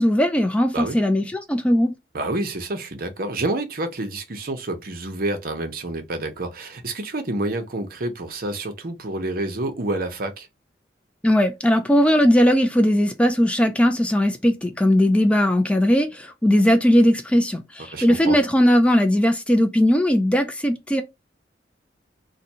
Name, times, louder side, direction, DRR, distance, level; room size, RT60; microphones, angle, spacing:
voice 1, 0.0-1.9 11.2-21.0, equal, 5° left, 0.3 m, -18 dB
voice 2, 2.1-10.5 17.9-18.4, right 2 dB, 55° right, 0.8 m, -28 dB
2.6 x 2.6 x 4.2 m
head